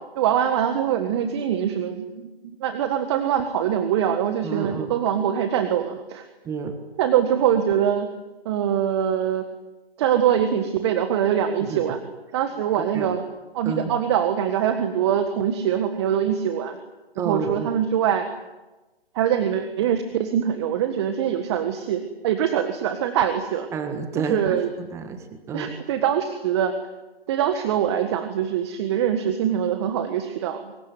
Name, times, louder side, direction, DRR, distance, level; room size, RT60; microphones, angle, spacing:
voice 1, 0.0-2.0 2.6-6.3 7.0-8.1 8.5-9.5 10.0-12.0 12.3-13.2 13.5-16.8 17.2-18.3 19.1-23.7 24.2-24.7 25.5-26.7 27.3-30.8, right 9 dB, 25° right, 8 dB, 1.7 m, -23 dB
voice 2, 4.4-4.9 6.4-6.8 11.7-11.9 12.9-13.1 13.6-13.9 17.2-17.7 23.7-25.7, right 5 dB, 10° right, 7 dB, 1.6 m, -30 dB
24.5 x 23.0 x 9.4 m, 1.1 s
hypercardioid pair, 150°, 31 cm